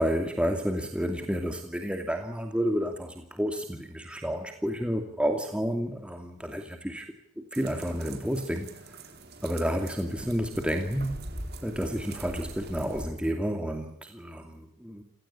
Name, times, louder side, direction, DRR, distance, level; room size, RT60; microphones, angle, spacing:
voice 1, 0.0-7.1 7.4-8.7 9.4-11.2 11.6-15.0, equal, 5° right, 4 dB, 2.5 m, -30 dB
sound 1, 7.5-13.1, right 1 dB, 50° right, 4.2 m, -43 dB
30.0 x 17.5 x 9.9 m, 0.67 s
head